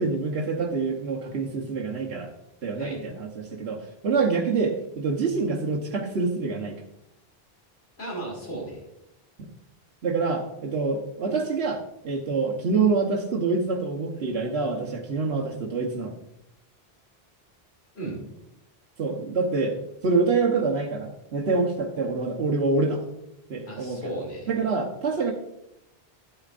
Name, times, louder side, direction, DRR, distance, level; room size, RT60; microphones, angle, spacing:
voice 1, 0.0-2.3 2.6-6.8 10.0-16.1 19.0-19.8 20.0-23.0 23.5-24.1 24.5-25.3, right 4 dB, 90° right, -1 dB, 1.3 m, -26 dB
voice 2, 8.0-8.8 17.9-18.2 23.7-24.5, right 1 dB, 85° left, -2 dB, 2.9 m, -35 dB
11.5 x 8.7 x 2.5 m, 0.84 s
omnidirectional pair, 1.0 m